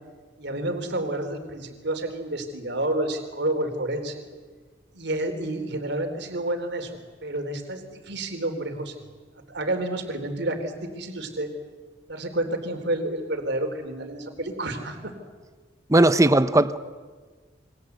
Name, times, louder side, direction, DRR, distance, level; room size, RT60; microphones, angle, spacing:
voice 1, 0.4-4.2 4.9-8.9 9.3-11.5 12.1-15.1, right 1 dB, 65° right, 6 dB, 3.7 m, -30 dB
voice 2, 15.9-16.8, right 2 dB, 15° right, 13 dB, 0.9 m, -17 dB
28.0 x 24.0 x 8.2 m, 1.4 s
head